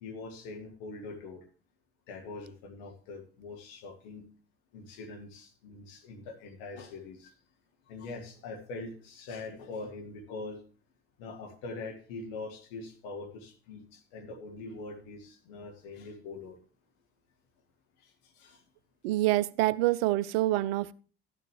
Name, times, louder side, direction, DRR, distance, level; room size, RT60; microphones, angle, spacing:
voice 1, 0.0-1.5 2.1-4.3 4.7-7.3 7.9-10.6 11.2-16.6 18.0-18.6, left 3 dB, 70° left, 1.8 m, -43 dB
voice 2, 19.0-20.9, right 16 dB, 70° right, 0.5 m, -26 dB
13.0 x 9.9 x 3.2 m
figure-of-eight pair, 55°, 31 cm